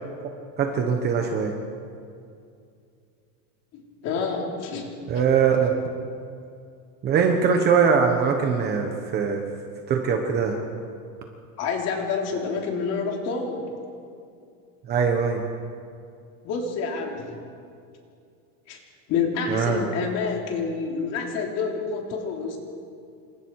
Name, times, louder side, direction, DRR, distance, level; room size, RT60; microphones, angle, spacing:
voice 1, 0.6-1.5 5.1-5.7 7.0-9.4 9.9-10.6 14.9-15.4 19.5-19.8, right 6 dB, 20° right, 3 dB, 1.3 m, -22 dB
voice 2, 3.7-4.9 11.6-13.7 16.4-17.4 18.7-18.8 19.1-22.6, left 5 dB, 35° left, 0 dB, 3.7 m, -28 dB
28.5 x 26.0 x 4.9 m, 2.4 s
supercardioid pair, 180°, 46 cm